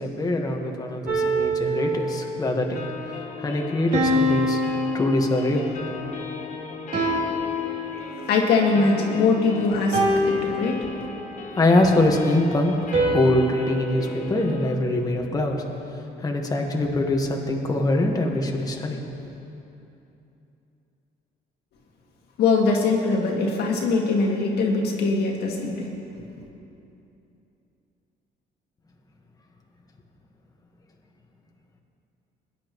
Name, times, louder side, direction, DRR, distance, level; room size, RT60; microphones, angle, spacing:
voice 1, 0.0-4.6 4.9-5.8 11.6-12.8 13.1-15.5 16.2-19.0, left 1 dB, 20° left, 1 dB, 1.4 m, -23 dB
sound 1, 1.1-2.6 3.9-5.8 6.9-8.4 9.9-11.4 12.9-15.2, equal, 50° right, 2.8 m, -26 dB
sound 2, 2.7-14.7, left 4 dB, 45° left, 1.1 m, -37 dB
voice 2, 8.3-10.0 10.3-10.9 22.4-25.9, left 4 dB, 70° left, 0 dB, 2.0 m, -22 dB
22.0 x 10.5 x 3.1 m, 2.8 s
cardioid pair, 110°, 17 cm